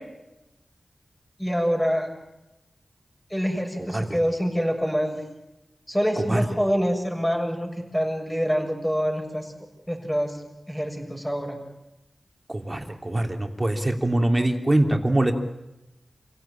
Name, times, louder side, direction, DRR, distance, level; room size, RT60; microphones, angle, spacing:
voice 1, 1.4-2.1 3.3-5.2 5.9-9.5 9.9-10.4 10.7-11.6, equal, 5° left, 2 dB, 6.4 m, -26 dB
voice 2, 12.5-15.3, right 1 dB, 25° right, 5 dB, 3.1 m, -23 dB
28.0 x 16.5 x 8.8 m, 0.95 s
wide cardioid pair, 60°, 0 cm